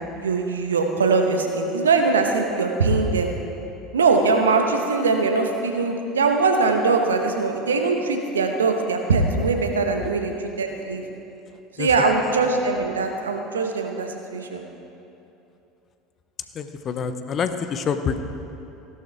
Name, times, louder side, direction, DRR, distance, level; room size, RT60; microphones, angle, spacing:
voice 1, 0.2-3.3 3.9-11.0 11.8-14.6, right 4 dB, 80° right, 4 dB, 1.0 m, -21 dB
voice 2, 16.5-18.2, left 6 dB, 40° left, 9 dB, 0.8 m, -27 dB
16.0 x 12.0 x 3.4 m, 2.8 s
figure-of-eight pair, 70°, 0 cm